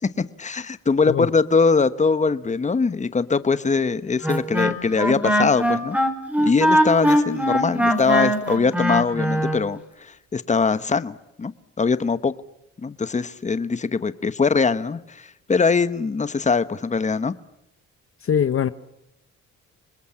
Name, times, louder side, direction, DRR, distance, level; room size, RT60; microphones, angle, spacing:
voice 1, 0.0-6.0 6.4-9.8 10.1-11.5 11.8-12.3 12.8-17.3, left 4 dB, 25° left, 1.1 m, -22 dB
Wind instrument woodwind instrument, 4.2-9.6, equal, 5° right, 4.4 m, -21 dB
voice 2, 18.2-18.7, left 8 dB, 45° left, 1.0 m, -21 dB
26.0 x 21.0 x 8.7 m
cardioid pair, 90°, 30 cm